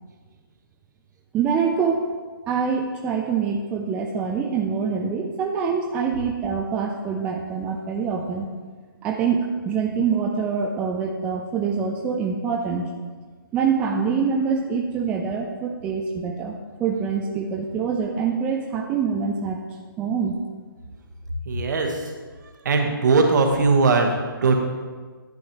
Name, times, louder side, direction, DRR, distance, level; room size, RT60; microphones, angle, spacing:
voice 1, 1.3-2.0 2.5-8.5 9.0-12.9 13.5-16.5 16.8-19.6 20.0-20.4, right 6 dB, 10° right, 1 dB, 0.4 m, -25 dB
voice 2, 21.4-22.1 22.6-24.5, right 3 dB, 50° right, 3 dB, 1.2 m, -20 dB
11.0 x 7.8 x 3.0 m, 1.5 s
figure-of-eight pair, 140°, 12 cm